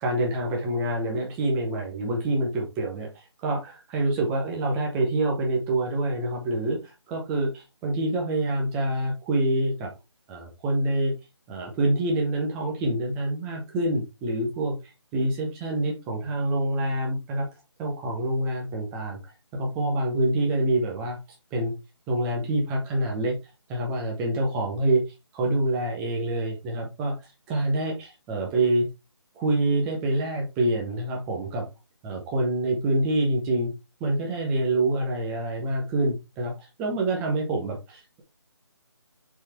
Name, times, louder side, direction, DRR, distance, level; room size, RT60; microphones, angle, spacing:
voice 1, 0.0-9.9 10.3-11.1 11.5-14.8 15.1-17.5 17.8-19.2 19.5-21.2 21.5-21.7 22.1-23.4 23.7-25.0 25.3-27.1 27.5-28.9 29.4-31.7 32.0-33.7 34.0-36.5 36.8-38.2, right 1 dB, 5° right, 0 dB, 0.7 m, -26 dB
7.0 x 4.1 x 3.4 m, 0.25 s
figure-of-eight pair, 170°, 15 cm